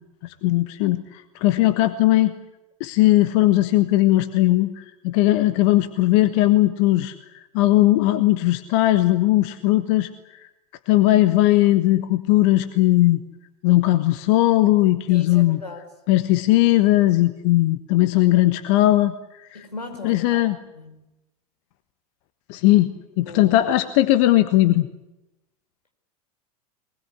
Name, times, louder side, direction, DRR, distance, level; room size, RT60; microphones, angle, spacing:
voice 1, 0.2-2.3 2.8-7.1 7.5-10.1 10.9-13.2 13.6-15.6 16.1-19.1 19.4-19.7 20.0-20.6 22.5-22.9 23.2-24.9, left 16 dB, 50° left, 11 dB, 1.4 m, -18 dB
voice 2, 15.1-15.8 19.5-20.5 20.7-21.0 23.3-23.6, left 2 dB, 85° left, 4 dB, 4.9 m, -38 dB
23.0 x 20.5 x 9.8 m, 0.92 s
figure-of-eight pair, 85°, 20 cm